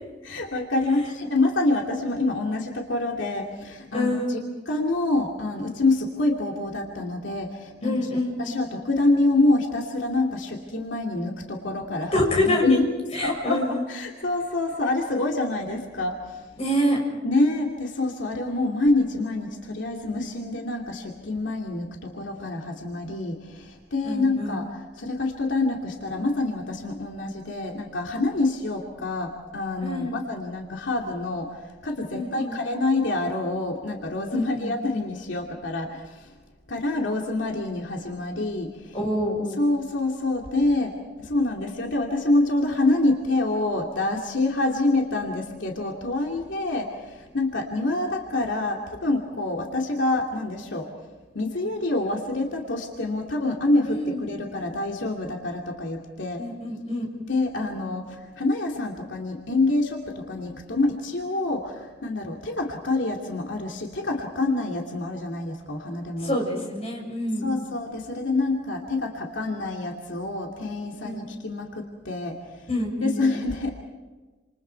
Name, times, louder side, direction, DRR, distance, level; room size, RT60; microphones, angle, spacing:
voice 1, 0.2-4.4 4.7-8.1 8.4-12.9 13.2-16.4 17.2-24.7 25.0-36.3 36.7-39.0 39.6-50.9 51.3-56.4 57.3-66.3 67.4-72.4 73.0-73.7, left 2 dB, 80° left, 0 dB, 2.6 m, -26 dB
voice 2, 3.9-4.5 7.8-8.6 12.1-12.8 13.1-13.8 16.6-17.0 24.0-24.6 29.8-30.2 32.1-32.6 34.3-34.8 38.9-39.6 53.9-54.3 56.4-57.1 66.2-67.6 71.0-71.2 72.7-73.3, left 1 dB, 35° left, 0 dB, 6.9 m, -27 dB
29.0 x 27.5 x 4.7 m, 1.3 s
head